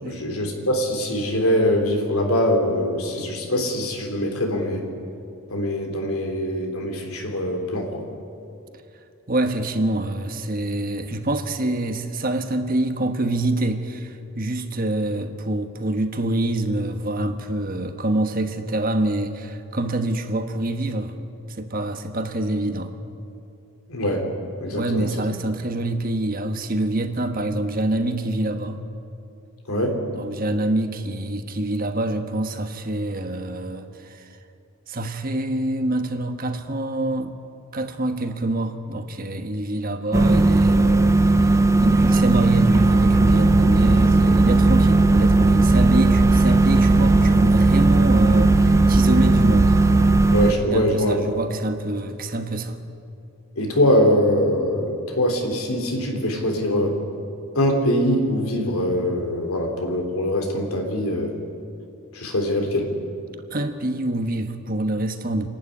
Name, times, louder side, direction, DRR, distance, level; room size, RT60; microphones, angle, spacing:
voice 1, 0.1-4.9 5.5-8.0 23.9-24.3 24.6-25.1 29.7-30.0 50.3-51.2 53.6-57.0 57.5-61.4 62.1-62.9, equal, 85° left, 3 dB, 3.4 m, -23 dB
voice 2, 9.3-21.1 21.5-22.9 24.7-28.8 30.1-34.4 34.9-37.3 37.7-49.7 50.7-52.8 63.5-65.5, right 1 dB, 40° right, 7 dB, 1.3 m, -26 dB
sound 1, 40.1-50.5, right 2 dB, 15° right, 0.7 m, -17 dB
sound 2, 42.7-50.2, right 5 dB, 65° right, 0.4 m, -24 dB
27.5 x 12.0 x 10.0 m, 2.6 s
head